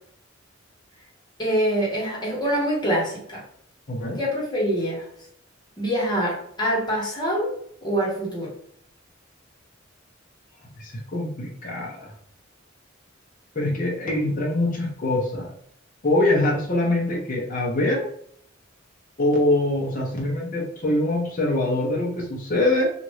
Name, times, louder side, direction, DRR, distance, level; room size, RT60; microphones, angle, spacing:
voice 1, 1.4-3.4 4.2-5.1 5.8-7.5 7.8-8.5, equal, 20° left, -5 dB, 1.2 m, -25 dB
voice 2, 3.9-4.2 10.8-12.1 13.5-15.5 16.0-18.0 19.2-22.9, left 1 dB, 40° left, -2 dB, 0.6 m, -24 dB
2.9 x 2.5 x 3.1 m, 0.66 s
head